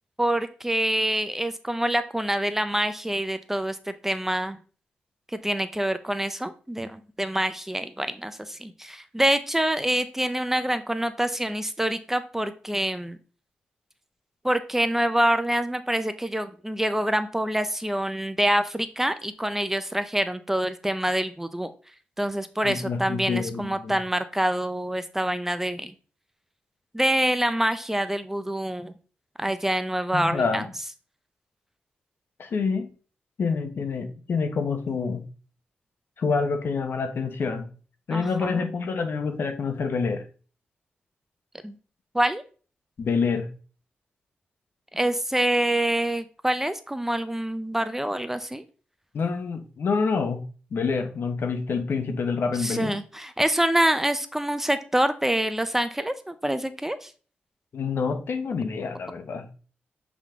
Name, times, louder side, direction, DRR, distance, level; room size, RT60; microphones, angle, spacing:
voice 1, 0.2-3.8 4.0-4.6 5.4-13.2 14.4-21.7 22.2-25.9 26.9-28.9 29.4-30.7 38.1-38.6 41.6-41.8 42.1-42.4 44.9-48.6 52.6-57.1, right 1 dB, 10° right, 11 dB, 0.6 m, -26 dB
voice 2, 22.6-24.0 30.1-30.7 32.4-32.8 33.4-35.2 36.2-37.7 38.1-40.2 43.0-43.5 49.1-50.4 50.7-52.9 57.7-59.5, left 5 dB, 65° left, 7 dB, 1.0 m, -27 dB
7.2 x 3.6 x 3.6 m, 0.38 s
cardioid pair, 75°, 4 cm